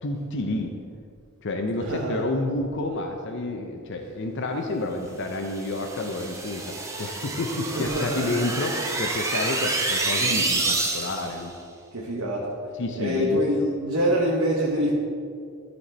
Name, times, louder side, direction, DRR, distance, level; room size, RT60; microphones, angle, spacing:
voice 1, 0.0-0.7 1.4-11.5 12.8-13.4, left 2 dB, 60° left, 3 dB, 0.6 m, -29 dB
voice 2, 1.8-2.2 7.7-8.3 11.9-12.5 13.0-14.9, equal, 80° right, -3 dB, 1.0 m, -25 dB
sound 1, 5.4-11.4, right 3 dB, 15° right, 0.7 m, -28 dB
13.0 x 4.3 x 4.3 m, 2.3 s
head